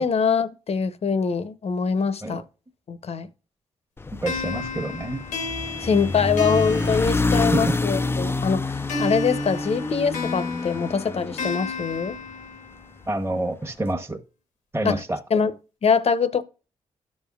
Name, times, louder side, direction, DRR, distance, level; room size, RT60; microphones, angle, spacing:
voice 1, 0.0-2.4 2.9-3.3 5.8-12.2 14.8-15.0 15.3-15.5 15.8-16.4, left 5 dB, 50° left, 0.8 m, -23 dB
sound 1, 4.0-12.3, left 3 dB, 20° left, 0.4 m, -27 dB
voice 2, 4.2-5.2 7.5-7.7 13.1-14.2 14.7-15.2, right 1 dB, 20° right, 1.2 m, -27 dB
sound 2, 4.3-7.9 8.9-12.9, left 2 dB, 90° left, 1.1 m, -32 dB
13.0 x 5.3 x 2.4 m
supercardioid pair, 50°, 13 cm